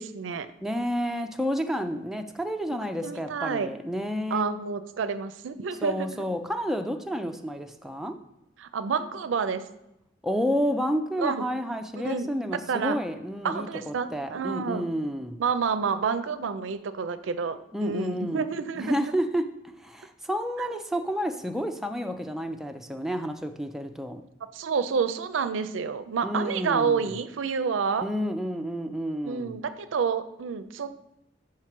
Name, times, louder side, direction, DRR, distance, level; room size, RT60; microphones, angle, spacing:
voice 1, 0.0-0.5 3.0-3.7 4.3-6.2 8.6-9.6 11.2-11.4 12.0-12.3 12.7-13.0 13.4-14.9 15.4-19.1 20.6-20.8 24.5-28.1 29.2-30.9, right 6 dB, 85° right, 12 dB, 0.4 m, -29 dB
voice 2, 0.6-4.5 5.8-8.2 10.2-15.4 17.7-18.4 18.8-19.4 19.8-24.2 26.2-27.1 28.0-29.6, equal, ahead, 5 dB, 0.3 m, -30 dB
4.8 x 4.5 x 5.8 m, 0.86 s
head